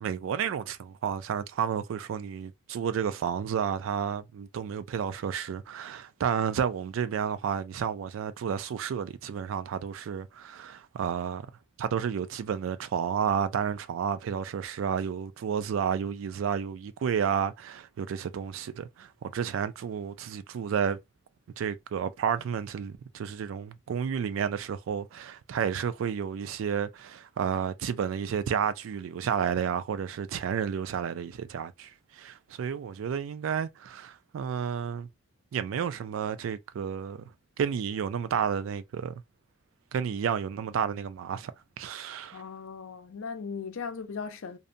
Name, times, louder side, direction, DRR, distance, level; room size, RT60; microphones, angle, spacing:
voice 1, 0.0-11.5 11.8-21.0 21.6-35.1 35.5-37.2 37.6-39.2 39.9-41.5 41.8-42.4, right 7 dB, 85° right, 0.3 m, -31 dB
voice 2, 42.3-44.6, left 5 dB, 85° left, 0.5 m, -38 dB
2.6 x 2.1 x 2.5 m
head